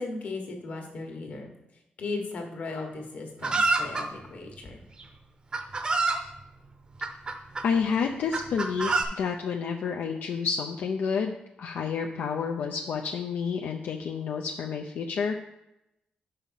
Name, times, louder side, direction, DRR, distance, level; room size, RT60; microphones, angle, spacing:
voice 1, 0.0-1.5 2.0-4.8, left 3 dB, 55° left, 2 dB, 1.4 m, -36 dB
Chicken rooster, 3.4-4.1 5.0-5.1 5.5-6.2 7.0-7.7 8.3-9.0, right 3 dB, 30° right, 0.6 m, -26 dB
voice 2, 7.6-15.4, left 6 dB, 85° left, 1 dB, 0.5 m, -29 dB
5.5 x 4.9 x 5.7 m, 0.88 s
wide cardioid pair, 160°, 3 cm